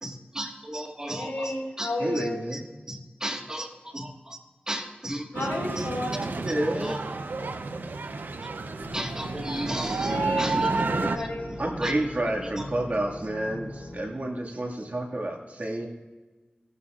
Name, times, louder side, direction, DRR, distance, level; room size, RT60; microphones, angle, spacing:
voice 1, 0.0-1.5 1.8-1.9 2.2-2.3 2.5-2.6 2.9-3.7 3.9-4.4 4.7-5.3 6.8-7.0 8.9-10.7 11.8-11.9, right 1 dB, 20° right, 3 dB, 1.6 m, -34 dB
voice 2, 1.1-2.4 5.3-6.2 9.9-10.5 10.9-11.5, left 2 dB, 75° left, -3 dB, 4.4 m, -32 dB
voice 3, 2.0-2.6 6.2-7.0 11.6-15.9, right 1 dB, 50° right, 0 dB, 1.9 m, -29 dB
sound 1, 5.3-11.2, right 3 dB, 80° right, 0.7 m, -30 dB
sound 2, 8.8-14.1, left 1 dB, 40° left, 2.1 m, -41 dB
17.5 x 11.5 x 2.5 m, 1.3 s
cardioid pair, 45°, 3 cm